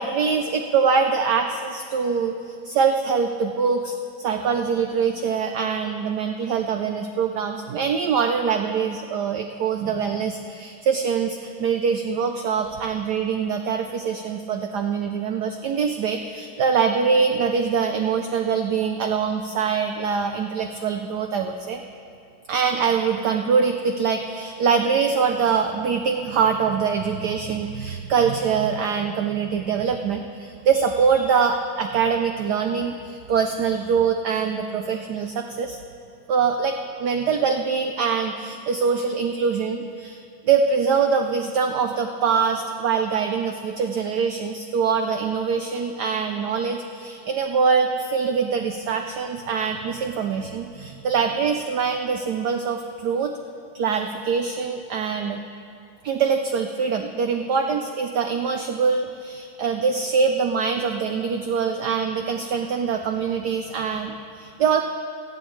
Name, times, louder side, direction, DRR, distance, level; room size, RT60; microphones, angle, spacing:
voice 1, 0.0-21.8 22.5-35.8 36.3-40.2 40.5-53.3 53.7-55.4 56.0-64.8, right 6 dB, 90° right, 5 dB, 0.9 m, -23 dB
22.5 x 8.8 x 3.2 m, 2.5 s
omnidirectional pair, 2.4 m